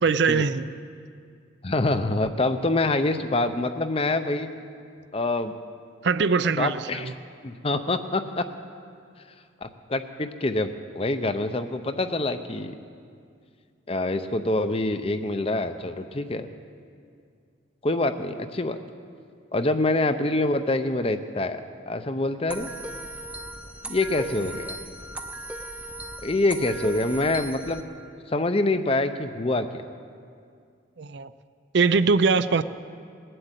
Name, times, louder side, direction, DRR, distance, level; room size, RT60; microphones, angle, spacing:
voice 1, 0.0-0.7 6.0-7.1 31.0-31.3 31.7-32.6, right 4 dB, 60° right, 13 dB, 0.4 m, -22 dB
voice 2, 1.6-4.5 5.1-5.5 6.6-7.1 7.4-8.5 9.6-12.8 13.9-16.5 17.8-18.8 19.5-21.6 21.9-22.7 23.8-24.8 26.2-27.8 28.3-29.8, left 2 dB, 30° left, 9 dB, 0.6 m, -25 dB
sound 1, 22.5-27.8, right 1 dB, 5° right, 0.7 m, -37 dB
19.5 x 7.8 x 9.0 m, 2.3 s
head